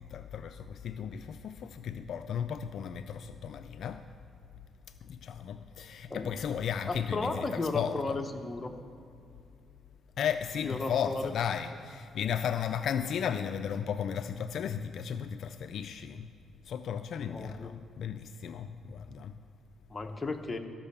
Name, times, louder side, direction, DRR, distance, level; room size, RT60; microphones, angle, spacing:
voice 1, 0.0-4.0 5.0-8.2 10.2-16.3 16.6-19.4, left 8 dB, 65° left, 9 dB, 0.4 m, -35 dB
voice 2, 6.8-8.7 10.6-11.3 12.2-12.3 17.3-17.7 19.9-20.6, left 3 dB, 25° left, 4 dB, 0.9 m, -34 dB
14.0 x 5.6 x 6.8 m, 2.6 s
cardioid pair, 90°, 0 cm